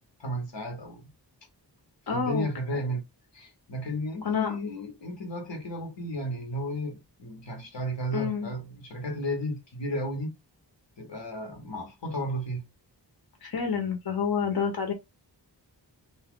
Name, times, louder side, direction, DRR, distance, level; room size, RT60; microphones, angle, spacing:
voice 1, 0.2-1.0 2.1-3.0 3.3-10.3 11.0-12.7, equal, 80° left, 1.1 m, -33 dB
voice 2, 2.1-2.5 4.2-4.5 8.1-8.5 13.4-14.9, left 6 dB, 60° left, 0.9 m, -28 dB
2.8 x 2.3 x 3.6 m
wide cardioid pair, 65°, 43 cm